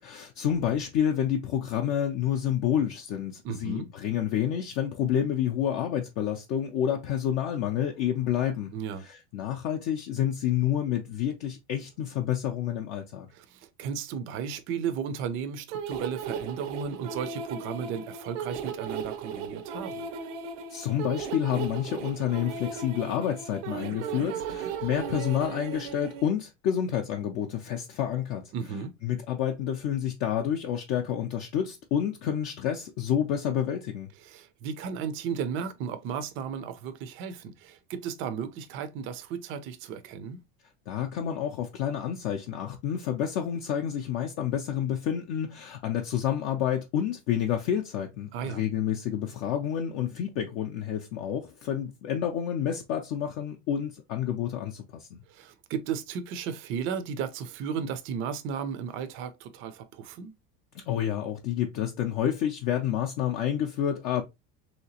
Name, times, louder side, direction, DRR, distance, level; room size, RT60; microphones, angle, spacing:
voice 1, 0.0-8.7 9.0-13.3 20.7-28.5 29.0-34.1 40.9-55.2 60.7-64.2, left 9 dB, 45° left, 0.5 m, -29 dB
voice 2, 3.4-3.9 8.7-9.0 13.3-20.1 28.5-28.9 34.2-40.4 48.3-48.6 55.3-60.3, right 7 dB, 35° right, 0.4 m, -34 dB
sound 1, 15.7-26.3, right 6 dB, 85° right, 0.7 m, -36 dB
3.2 x 2.8 x 2.7 m
cardioid pair, 150°, 36 cm